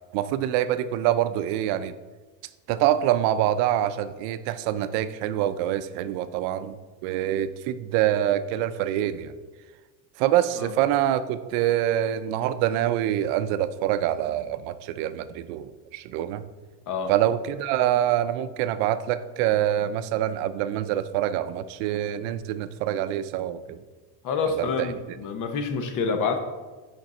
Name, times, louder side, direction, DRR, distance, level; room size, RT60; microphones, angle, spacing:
voice 1, 0.1-1.9 2.7-6.8 7.0-9.3 10.2-16.4 17.1-23.8 24.6-24.9, right 12 dB, 80° right, 13 dB, 0.5 m, -25 dB
voice 2, 24.2-26.4, left 5 dB, 45° left, 7 dB, 0.9 m, -27 dB
6.3 x 5.3 x 4.1 m, 1.3 s
cardioid pair, 140°, 42 cm